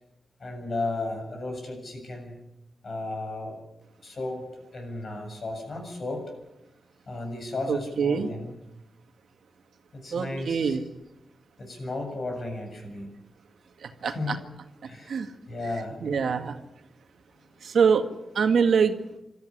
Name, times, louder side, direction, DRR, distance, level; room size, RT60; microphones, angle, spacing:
voice 1, 0.4-2.4 2.8-3.6 4.0-4.5 4.7-6.3 7.1-8.6 9.9-10.8 11.6-13.1 14.0-14.5 14.9-15.2 15.5-16.0, left 2 dB, 50° left, 3 dB, 7.4 m, -34 dB
voice 2, 7.7-8.3 10.1-10.8 14.0-14.4 15.1-15.3 16.0-16.5 17.6-18.1 18.4-18.9, right 6 dB, 75° right, 7 dB, 1.9 m, -24 dB
27.0 x 13.5 x 9.9 m, 0.93 s
wide cardioid pair, 130°, 0 cm